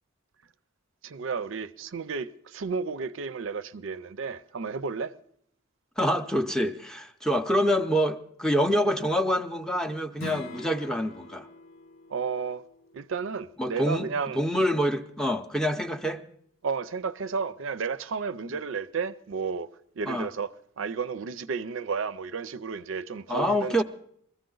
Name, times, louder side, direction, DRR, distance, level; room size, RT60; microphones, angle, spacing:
voice 1, 1.0-5.1 7.6-7.7 12.1-12.6 12.9-14.4 16.6-19.7 20.0-23.8, right 5 dB, 65° right, 0.5 m, -32 dB
voice 2, 6.0-11.5 13.6-14.1 14.3-16.2 20.1-20.3 23.3-23.8, equal, 5° left, 0.5 m, -26 dB
Strum, 10.2-15.4, left 5 dB, 75° left, 0.8 m, -47 dB
21.5 x 14.5 x 3.9 m
head